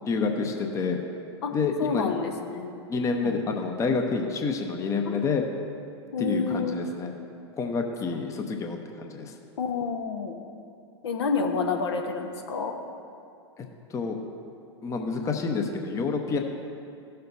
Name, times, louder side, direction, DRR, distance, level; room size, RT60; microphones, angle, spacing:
voice 1, 0.0-1.0 1.5-2.1 2.9-5.4 6.2-7.1 7.6-9.3 13.6-13.7 13.9-14.2 14.8-16.4, left 4 dB, 20° left, 4 dB, 0.8 m, -28 dB
voice 2, 1.8-2.9 3.2-3.4 5.1-5.2 6.1-6.8 9.6-10.4 11.0-12.7, left 4 dB, 65° left, 3 dB, 1.0 m, -29 dB
15.5 x 6.6 x 2.7 m, 2.5 s
figure-of-eight pair, 100°, 14 cm